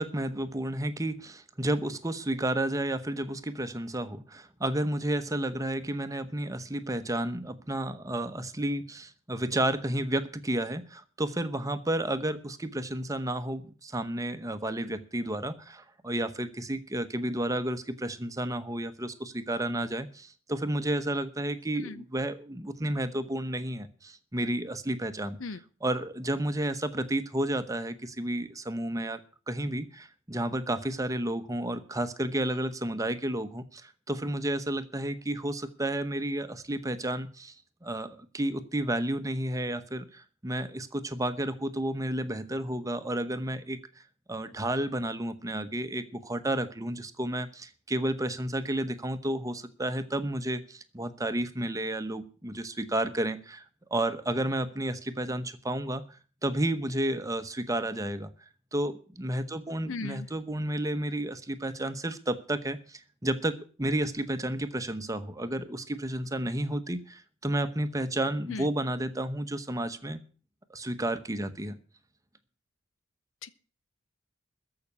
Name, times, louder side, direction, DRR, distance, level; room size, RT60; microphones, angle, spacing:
voice 1, 0.0-25.4 25.8-29.2 29.5-37.5 37.8-43.8 44.3-53.6 53.9-56.0 56.4-58.3 58.7-70.2 70.7-71.8, right 1 dB, 15° right, 10 dB, 1.0 m, -31 dB
voice 2, 21.7-22.0 25.4-25.6 59.9-60.3 68.5-68.7 73.4-73.5, left 3 dB, 70° left, 16 dB, 0.8 m, -37 dB
14.0 x 5.9 x 9.8 m, 0.39 s
head